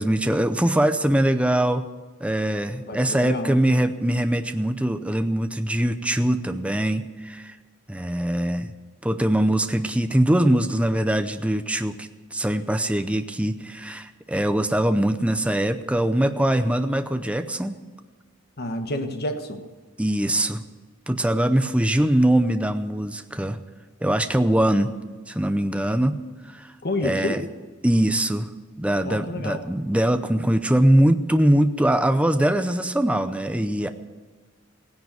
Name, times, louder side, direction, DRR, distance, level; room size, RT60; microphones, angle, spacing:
voice 1, 0.0-1.9 2.2-7.6 7.9-8.7 9.0-17.7 20.0-20.6 21.1-23.6 24.0-24.9 25.3-26.7 27.0-27.4 27.8-28.5 28.8-33.9, right 1 dB, 5° right, 9 dB, 0.6 m, -22 dB
voice 2, 2.9-3.6 18.6-19.6 26.8-27.4 29.0-29.6, left 1 dB, 50° left, 6 dB, 1.5 m, -29 dB
16.5 x 10.5 x 7.9 m, 1.4 s
head